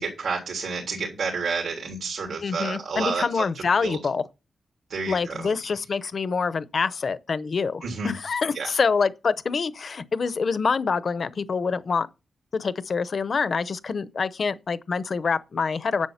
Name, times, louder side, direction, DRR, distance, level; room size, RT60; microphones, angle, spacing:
voice 1, 0.0-4.0 4.9-5.5 7.8-8.1 8.5-8.7, right 4 dB, 85° right, 3.3 m, -30 dB
voice 2, 2.4-4.2 5.1-12.1 12.5-16.1, left 5 dB, 45° left, 0.7 m, -26 dB
10.5 x 7.4 x 5.8 m
wide cardioid pair, 170°, 0 cm